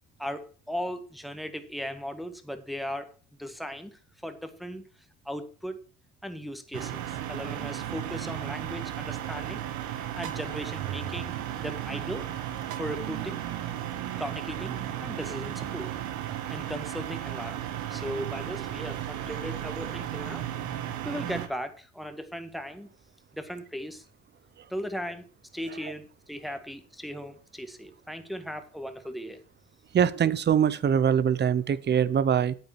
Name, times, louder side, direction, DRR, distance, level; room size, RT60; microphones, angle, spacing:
voice 1, 0.2-4.8 5.2-5.8 6.2-9.6 10.2-12.3 12.8-13.4 14.2-15.9 16.2-20.5 20.7-22.9 23.3-24.0 24.7-25.2 25.5-29.4, equal, ahead, 1.7 m, -37 dB
sound 1, 6.7-21.5, right 11 dB, 75° right, 1.8 m, -34 dB
voice 2, 29.9-32.5, right 8 dB, 35° right, 0.9 m, -23 dB
8.9 x 8.8 x 6.1 m
cardioid pair, 110°, 30 cm